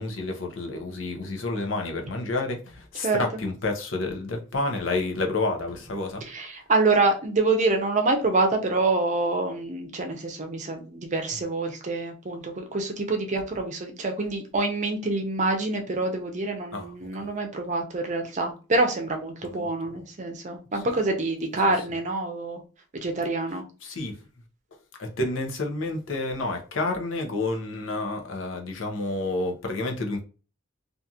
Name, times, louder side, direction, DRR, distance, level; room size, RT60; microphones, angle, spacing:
voice 1, 0.0-6.2 16.7-17.3 19.4-19.9 20.7-20.8 23.8-24.2 25.0-30.2, left 2 dB, 75° left, 0.7 m, -30 dB
voice 2, 6.2-22.6 22.9-23.6, right 3 dB, 35° right, 0.6 m, -26 dB
2.8 x 2.5 x 2.4 m
head